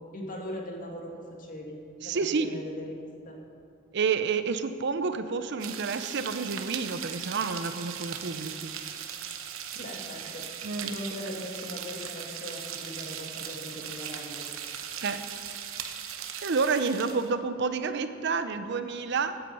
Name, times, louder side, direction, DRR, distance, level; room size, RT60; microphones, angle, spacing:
voice 1, 0.1-3.4 9.8-10.5 10.8-14.4, left 1 dB, 40° left, 0 dB, 2.0 m, -40 dB
voice 2, 2.0-2.7 3.9-8.7 9.8-9.9 10.6-10.9 15.0-15.3 16.4-19.3, right 5 dB, 60° right, 10 dB, 0.6 m, -29 dB
sound 1, 5.6-17.3, right 8 dB, 80° right, 0.9 m, -38 dB
15.0 x 8.6 x 5.5 m, 2.4 s
head